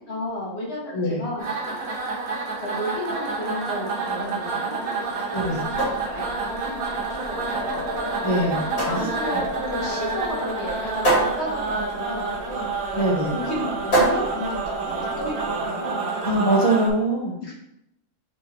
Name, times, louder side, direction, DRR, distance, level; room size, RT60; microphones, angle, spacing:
voice 1, 0.1-2.0 2.6-5.2 5.5-7.9 8.2-8.4 8.9-16.1 17.4-17.5, left 1 dB, 50° left, -3 dB, 1.4 m, -33 dB
sound 1, 1.4-16.9, right 3 dB, 80° right, 1.4 m, -29 dB
voice 2, 5.3-5.6 8.2-8.6 8.9-9.4 12.9-13.3 16.2-17.4, right 1 dB, 30° left, -3 dB, 0.8 m, -23 dB
sound 2, 5.5-15.5, right 2 dB, 80° left, 2.2 m, -28 dB
sound 3, 7.3-13.0, left 3 dB, ahead, 1.3 m, -37 dB
4.0 x 3.5 x 3.3 m, 0.79 s
omnidirectional pair, 1.5 m